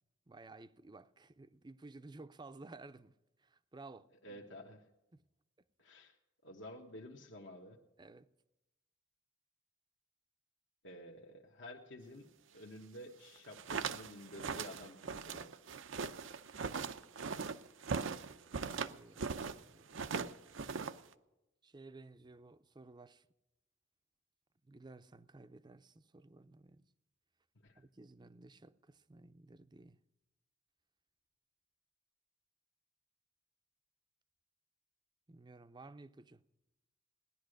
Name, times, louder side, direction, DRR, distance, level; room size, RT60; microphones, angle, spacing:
voice 1, 0.3-3.1 3.4-4.4 5.1-5.2 8.0-8.3 18.7-20.1 21.6-23.3 24.7-26.9 27.8-30.0 35.3-36.4, right 3 dB, 25° right, 0.5 m, -55 dB
voice 2, 4.2-4.8 5.8-6.2 6.4-7.8 10.8-15.5 27.6-27.8, left 1 dB, 65° left, 1.2 m, -51 dB
sound 1, 13.4-19.6 19.9-21.1, right 5 dB, 85° right, 0.7 m, -40 dB
17.5 x 11.0 x 6.5 m
head